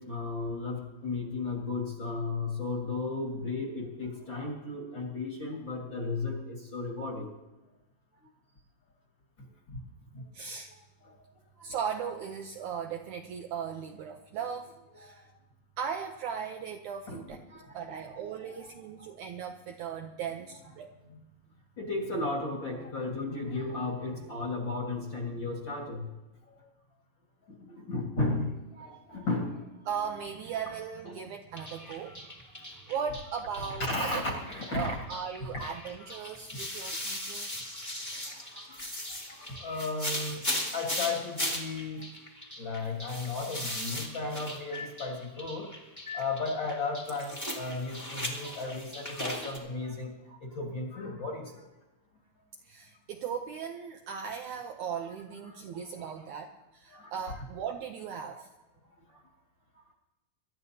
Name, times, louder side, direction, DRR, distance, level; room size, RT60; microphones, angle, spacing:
voice 1, 0.0-7.3 9.7-9.8 10.1-10.2 11.0-11.3 11.6-11.7 15.0-15.2 17.1-17.2 17.5-18.7 21.1-21.2 21.8-26.1 27.5-29.6 31.0-31.3 32.6-32.7 33.8-35.0 38.2-38.8 39.3-42.1 42.6-45.7 46.1-51.6 55.4-56.3 56.9-57.1 58.3-58.4 59.1-59.2, left 3 dB, 40° left, 0 dB, 1.8 m, -35 dB
voice 2, 10.3-10.7 11.6-15.3 15.8-17.4 17.7-20.9 28.9-29.0 29.9-32.3 32.6-34.2 34.7-37.5 52.6-58.5, right 7 dB, 75° right, 4 dB, 1.8 m, -38 dB
sound 1, 31.6-49.6, left 1 dB, 10° left, 1.2 m, -38 dB
25.0 x 12.5 x 2.8 m, 1.0 s
omnidirectional pair, 4.2 m